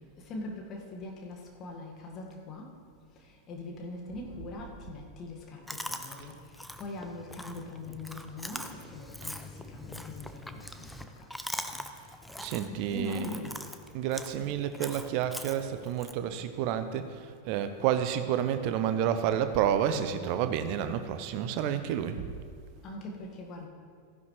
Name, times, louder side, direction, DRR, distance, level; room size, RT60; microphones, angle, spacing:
voice 1, 0.3-2.7 3.5-6.4 6.8-10.9 12.9-13.6 22.8-23.7, left 2 dB, 30° left, 0 dB, 1.7 m, -41 dB
Chewing mastication, 5.7-16.1, left 1 dB, ahead, 0.6 m, -42 dB
voice 2, 12.4-13.4 13.9-22.4, right 9 dB, 45° right, 10 dB, 0.8 m, -30 dB
14.5 x 10.5 x 3.2 m, 2.1 s
figure-of-eight pair, 90°, 0 cm